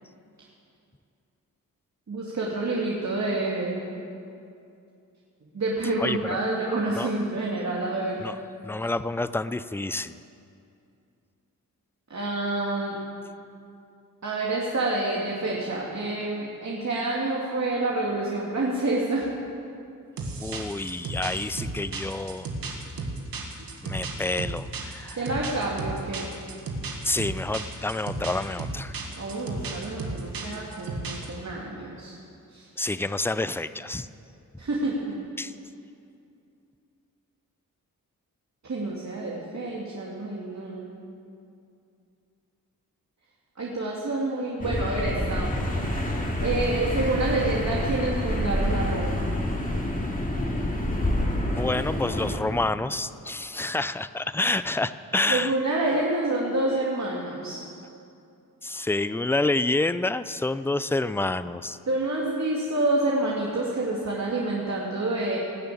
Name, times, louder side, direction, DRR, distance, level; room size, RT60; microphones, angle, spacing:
voice 1, 2.1-3.8 5.5-8.2 12.1-13.0 14.2-19.3 23.6-23.7 25.2-26.3 29.1-32.1 32.5-32.7 34.6-35.0 38.6-40.9 43.6-45.5 46.4-49.2 55.3-57.6 61.9-65.4, right 2 dB, 50° right, -4 dB, 2.3 m, -28 dB
voice 2, 6.0-6.4 7.0-7.1 8.2-8.4 8.6-10.2 20.4-22.5 23.8-25.3 27.0-29.0 32.8-34.1 35.4-35.5 51.5-55.5 56.7-56.8 58.6-61.8, left 2 dB, 5° left, 14 dB, 0.5 m, -28 dB
sound 1, 20.2-31.3, right 3 dB, 80° right, 1.7 m, -34 dB
sound 2, 44.6-52.4, left 1 dB, 25° left, 2.5 m, -27 dB
18.0 x 6.9 x 8.6 m, 2.5 s
cardioid pair, 50°, 34 cm